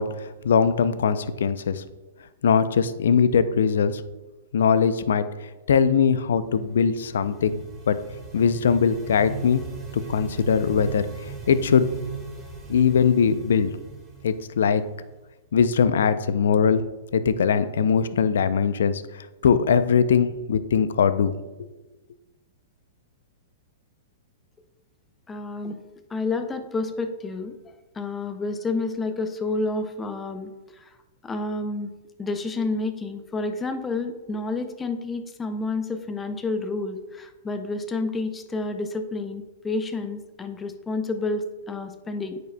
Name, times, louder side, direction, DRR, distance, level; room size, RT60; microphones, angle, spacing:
voice 1, 0.0-1.8 2.4-4.0 4.5-5.3 5.7-7.6 7.9-8.0 8.3-9.6 10.1-11.1 11.5-11.9 12.7-13.7 14.2-14.8 15.5-16.8 17.1-19.0 19.4-21.4, left 6 dB, 75° left, 13 dB, 0.4 m, -21 dB
sound 1, 6.5-15.2, right 4 dB, 15° right, 1.4 m, -39 dB
voice 2, 25.3-25.8 26.1-31.0 31.2-31.9 32.2-42.4, left 3 dB, 15° left, 8 dB, 0.5 m, -30 dB
9.0 x 4.7 x 2.2 m, 1.1 s
hypercardioid pair, 125°, 0 cm